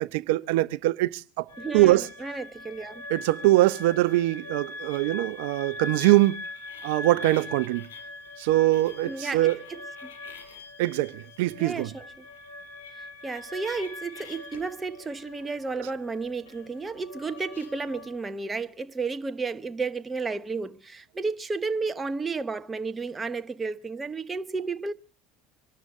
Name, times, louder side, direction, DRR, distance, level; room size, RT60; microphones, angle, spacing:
voice 1, 0.0-1.4 1.7-2.0 3.1-6.4 6.8-7.9 8.4-9.6 10.8-11.9, right 17 dB, 75° right, 0.6 m, -23 dB
sound 1, 1.5-18.1, left 2 dB, 85° left, 5.0 m, -42 dB
voice 2, 1.6-3.0 9.0-10.1 11.6-12.3 13.0-24.9, right 4 dB, 20° right, 1.1 m, -32 dB
25.0 x 12.5 x 3.6 m
hypercardioid pair, 85°, 0 cm